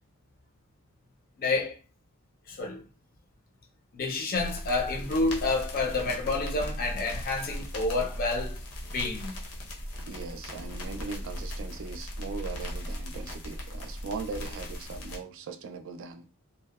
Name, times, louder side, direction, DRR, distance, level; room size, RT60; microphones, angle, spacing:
voice 1, 1.4-1.8 2.5-2.8 3.9-8.6 8.9-9.3, left 3 dB, 40° left, 0.5 m, -29 dB
sound 1, 4.3-15.2, equal, 90° left, 0.7 m, -37 dB
voice 2, 10.1-16.3, right 4 dB, 60° right, 0.3 m, -39 dB
2.6 x 2.0 x 2.3 m
head